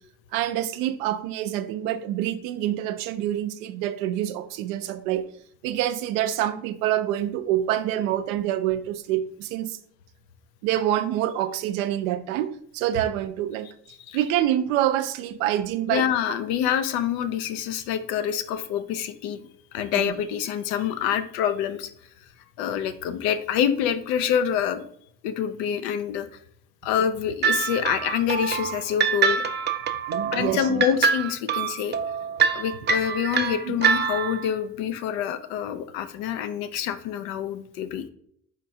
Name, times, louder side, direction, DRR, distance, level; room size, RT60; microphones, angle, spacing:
voice 1, 0.3-5.2 5.6-9.8 10.6-13.7 14.1-16.0 19.9-20.1 30.1-30.8 33.7-33.8, right 12 dB, 90° right, 11 dB, 0.5 m, -26 dB
voice 2, 15.9-19.4 19.7-21.9 22.6-24.8 25.2-26.3 26.8-29.4 30.3-32.0 32.5-38.0, left 9 dB, 85° left, 11 dB, 0.5 m, -26 dB
sound 1, 27.4-34.5, right 6 dB, 25° right, 0.4 m, -25 dB
4.5 x 4.4 x 2.6 m, 0.65 s
supercardioid pair, 65°, 40 cm